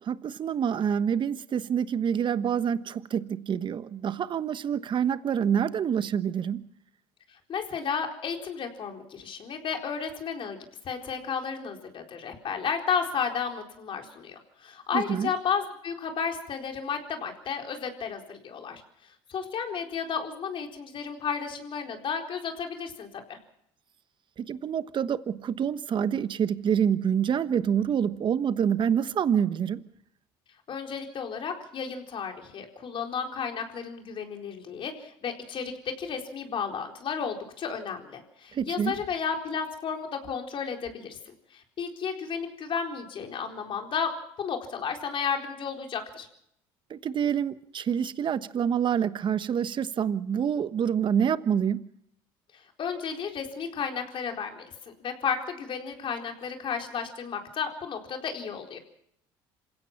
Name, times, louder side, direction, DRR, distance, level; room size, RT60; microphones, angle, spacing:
voice 1, 0.0-6.6 14.9-15.3 24.4-29.8 38.5-39.0 46.9-51.8, right 8 dB, 45° right, 1.2 m, -27 dB
voice 2, 7.5-10.6 10.8-18.8 19.3-23.4 30.7-41.2 41.5-44.1 44.4-46.3 52.8-58.8, left 6 dB, 50° left, 4.2 m, -33 dB
27.0 x 16.5 x 5.9 m
hypercardioid pair, 75°, 11 cm